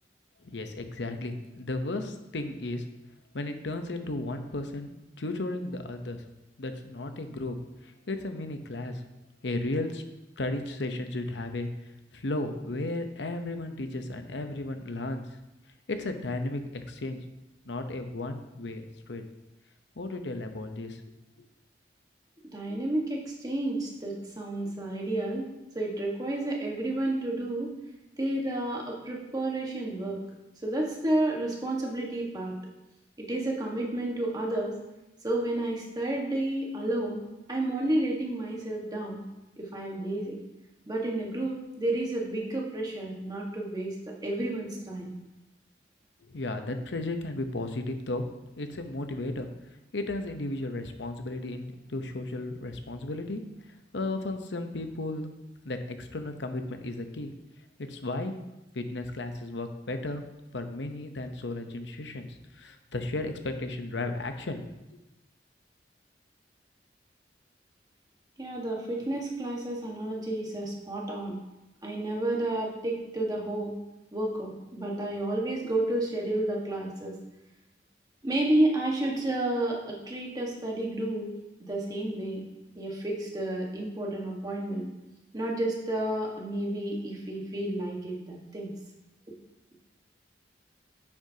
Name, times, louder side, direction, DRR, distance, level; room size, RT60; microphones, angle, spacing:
voice 1, 0.4-2.9 3.3-6.2 6.6-7.6 8.1-9.0 9.4-10.0 10.4-11.7 12.1-15.2 15.9-17.2 17.7-19.2 20.0-21.0 21.4-21.5 46.3-48.2 48.6-49.5 49.9-53.4 53.9-55.3 55.6-57.3 57.8-58.3 58.7-60.2 60.5-62.3 62.6-65.0, left 2 dB, 80° left, 7 dB, 0.8 m, -34 dB
voice 2, 22.5-25.5 25.7-27.7 28.2-30.2 30.6-32.5 33.2-34.8 35.2-37.2 37.5-39.2 39.6-40.4 40.9-45.1 68.4-71.4 71.8-73.8 74.1-77.1 78.2-81.3 81.6-82.4 82.7-84.9 85.3-88.7, right 1 dB, 20° right, -2 dB, 1.5 m, -31 dB
9.9 x 7.1 x 2.8 m, 0.98 s
head